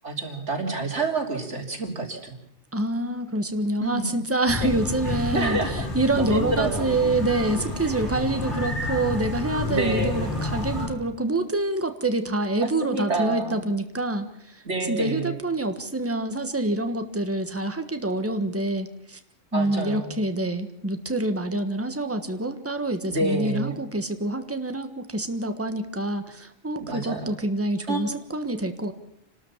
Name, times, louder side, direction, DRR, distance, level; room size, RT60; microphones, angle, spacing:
voice 1, 0.0-2.4 3.8-4.1 4.6-4.7 5.3-6.9 9.7-10.3 12.6-13.7 14.6-15.4 19.5-20.1 23.1-23.8 26.8-27.3 27.9-28.0, right 2 dB, 80° right, 2 dB, 3.5 m, -28 dB
voice 2, 2.7-5.6 5.9-14.3 14.9-19.2 19.5-28.9, right 2 dB, 10° right, 7 dB, 1.4 m, -26 dB
sound 1, 4.5-10.9, left 2 dB, 80° left, 7.7 m, -30 dB
29.0 x 13.0 x 7.3 m, 0.74 s
omnidirectional pair, 1.2 m